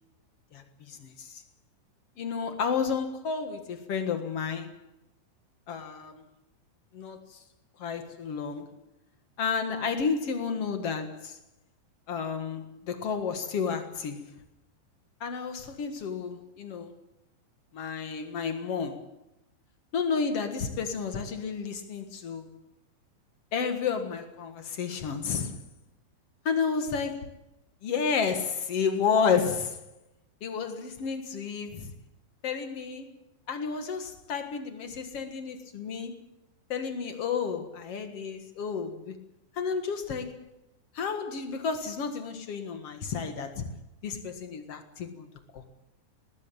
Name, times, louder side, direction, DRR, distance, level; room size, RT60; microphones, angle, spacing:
voice 1, 0.5-1.4 2.2-4.8 5.7-6.2 6.9-7.4 7.8-8.7 9.4-11.4 12.1-14.3 15.2-16.9 17.7-19.1 19.9-22.5 23.5-25.6 26.5-27.1 27.8-29.8 30.4-31.9 32.4-33.1 33.5-36.1 36.7-39.2 39.5-40.4 40.9-43.7 44.0-45.3 45.5-45.6, left 6 dB, 55° left, 7 dB, 1.7 m, -31 dB
20.0 x 16.5 x 8.7 m, 0.90 s
omnidirectional pair, 5.0 m